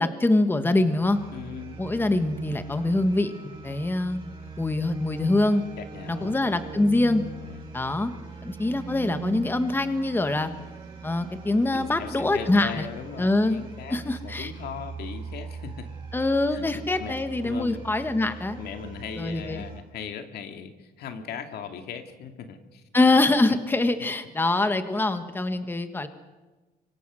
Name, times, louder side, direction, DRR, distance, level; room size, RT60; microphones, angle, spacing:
voice 1, 0.0-1.2 1.8-3.3 3.6-4.3 4.6-5.6 6.1-7.2 7.7-8.1 8.4-10.5 11.0-12.8 13.2-13.6 13.9-14.5 16.1-18.6 19.2-19.6 22.9-26.1, left 2 dB, 15° left, 9 dB, 1.4 m, -24 dB
sound 1, 0.8-19.8, right 5 dB, 30° right, 5.8 m, -40 dB
voice 2, 1.3-1.8 5.8-6.3 7.2-7.6 11.7-15.9 16.5-17.2 17.4-17.8 18.6-22.8, left 7 dB, 75° left, 6 dB, 2.4 m, -39 dB
26.0 x 24.0 x 6.3 m, 1.2 s
cardioid pair, 120°, 17 cm